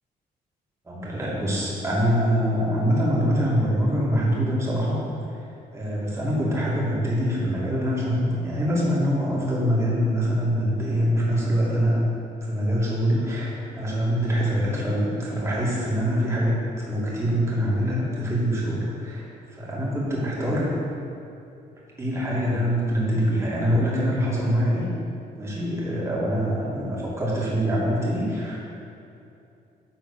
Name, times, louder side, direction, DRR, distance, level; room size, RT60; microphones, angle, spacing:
voice 1, 0.8-5.0 5.3-5.4 5.7-12.0 12.4-20.8 22.0-24.9 25.3-28.6, equal, 15° right, -6 dB, 2.1 m, -24 dB
10.5 x 3.8 x 6.8 m, 2.7 s
cardioid pair, 140°, 17 cm